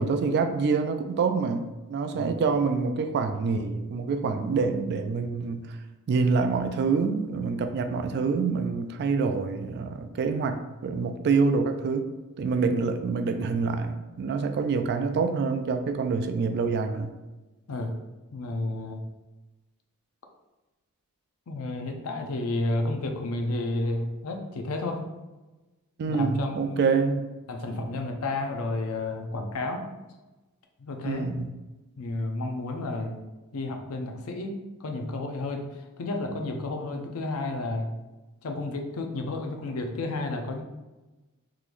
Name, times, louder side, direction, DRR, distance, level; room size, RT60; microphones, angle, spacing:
voice 1, 0.0-5.8 6.1-12.1 12.4-17.1 26.0-27.2 31.0-31.5, right 4 dB, 50° right, 7 dB, 0.3 m, -26 dB
voice 2, 17.7-18.0 18.3-19.0 21.5-25.1 26.0-27.0 27.5-29.9 30.8-31.3 32.0-33.2 33.5-37.9 38.4-40.6, left 2 dB, 75° left, 4 dB, 0.5 m, -31 dB
3.7 x 3.0 x 2.5 m, 1.1 s
head